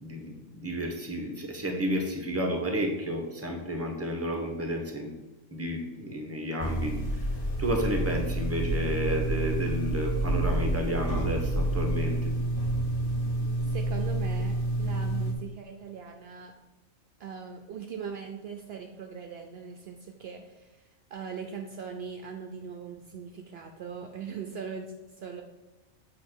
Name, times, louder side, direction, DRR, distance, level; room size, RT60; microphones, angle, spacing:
voice 1, 0.0-5.1 5.5-7.0 7.6-12.3, equal, 15° right, 2 dB, 1.0 m, -31 dB
sound 1, 6.6-15.3, right 1 dB, 50° left, 1.3 m, -29 dB
voice 2, 13.6-16.5 17.2-25.4, right 6 dB, 65° right, 4 dB, 0.8 m, -40 dB
7.2 x 3.1 x 6.1 m, 1.1 s
omnidirectional pair, 1.2 m